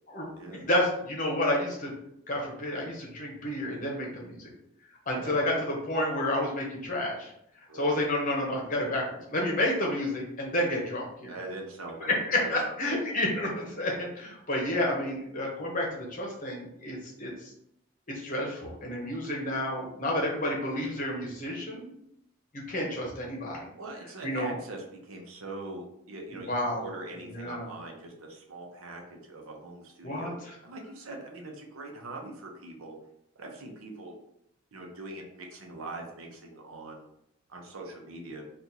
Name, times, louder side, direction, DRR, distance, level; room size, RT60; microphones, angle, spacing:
voice 1, 0.1-1.9 2.3-4.5 5.1-7.3 7.7-9.0 9.3-11.4 12.0-17.3 18.1-21.9 22.5-23.6 24.2-24.5 26.3-26.9 27.3-27.7 30.0-30.3, left 1 dB, 40° left, -2 dB, 0.9 m, -30 dB
voice 2, 5.1-5.5 7.7-8.0 11.3-12.7 23.8-30.4 30.6-33.0 33.4-34.1 34.7-37.1 37.5-38.4, right 2 dB, 85° right, 1 dB, 0.8 m, -42 dB
2.9 x 2.5 x 3.8 m, 0.76 s
head